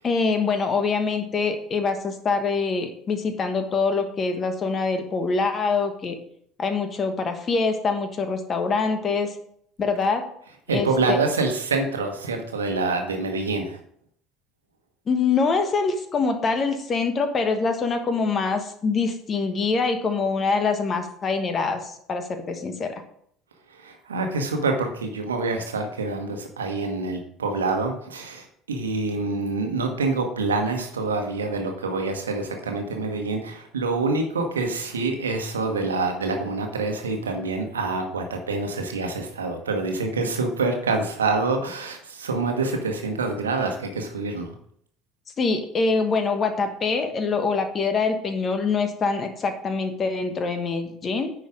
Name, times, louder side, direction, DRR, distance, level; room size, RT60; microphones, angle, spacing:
voice 1, 0.0-6.2 6.6-9.3 9.8-10.3 10.7-11.2 15.1-23.0 45.4-51.3, left 4 dB, 35° left, 7 dB, 1.3 m, -24 dB
voice 2, 10.5-13.8 23.7-44.5, right 3 dB, 75° right, 4 dB, 1.2 m, -26 dB
9.8 x 4.7 x 5.0 m, 0.67 s
figure-of-eight pair, 65°, 0 cm